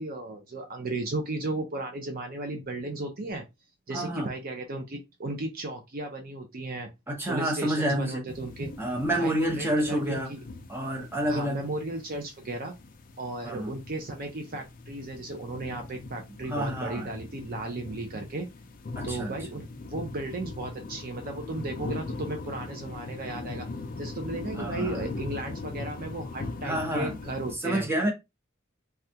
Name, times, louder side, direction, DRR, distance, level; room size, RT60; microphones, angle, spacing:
voice 1, 0.0-3.4 3.9-6.9 7.3-8.7 9.2-10.4 11.3-12.7 13.2-18.5 19.0-23.7 24.0-27.9, right 2 dB, 45° right, 0.5 m, -35 dB
voice 2, 3.9-4.3 7.1-8.2 8.8-10.3 10.7-11.6 13.4-13.7 16.5-17.1 19.0-19.3 24.6-25.1 26.6-27.2 27.6-28.1, right 1 dB, 10° right, 0.9 m, -28 dB
sound 1, 8.3-27.6, left 3 dB, 40° left, 0.4 m, -40 dB
3.4 x 2.3 x 2.7 m
head